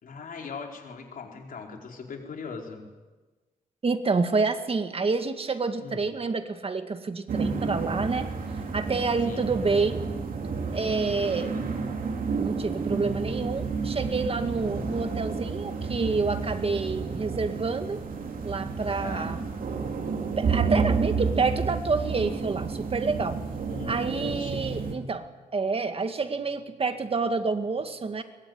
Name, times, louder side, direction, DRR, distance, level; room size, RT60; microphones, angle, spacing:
voice 1, 0.0-2.9 5.8-6.0 9.2-9.5 11.4-11.7 14.7-15.0 19.0-19.4 23.7-24.8, left 4 dB, 80° left, 2 dB, 4.9 m, -40 dB
voice 2, 3.8-8.3 8.7-10.0 10.7-11.5 12.4-18.0 18.4-19.5 20.4-23.4 23.9-25.3 25.5-28.2, right 4 dB, 40° right, 8 dB, 2.1 m, -28 dB
sound 1, 7.3-25.0, right 5 dB, 80° right, 3.6 m, -31 dB
22.5 x 22.0 x 9.6 m, 1.2 s
wide cardioid pair, 100°, 14 cm